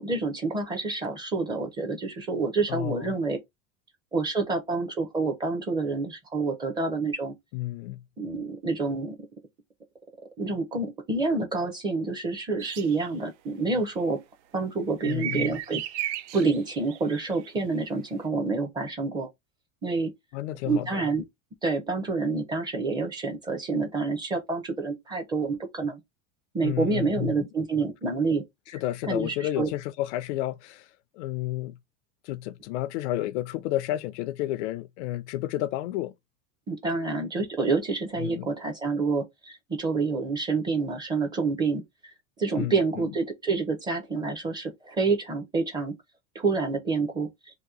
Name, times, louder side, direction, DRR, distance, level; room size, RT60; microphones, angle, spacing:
voice 1, 0.0-3.4 4.1-7.3 8.2-9.2 10.4-14.2 14.5-19.3 19.8-20.1 20.6-21.2 21.6-26.0 26.5-28.5 28.7-29.7 36.7-42.1 42.4-45.9 46.3-47.3, right 3 dB, 15° right, 0.5 m, -28 dB
voice 2, 2.7-3.2 7.5-8.0 15.1-15.5 20.3-21.0 26.6-27.5 28.7-30.9 31.1-31.8 32.2-36.1 38.2-38.5 42.5-43.1, left 15 dB, 85° left, 0.5 m, -31 dB
sound 1, 12.6-13.1 15.0-17.6, right 11 dB, 90° right, 0.6 m, -35 dB
2.9 x 2.6 x 3.6 m
supercardioid pair, 170°, 34 cm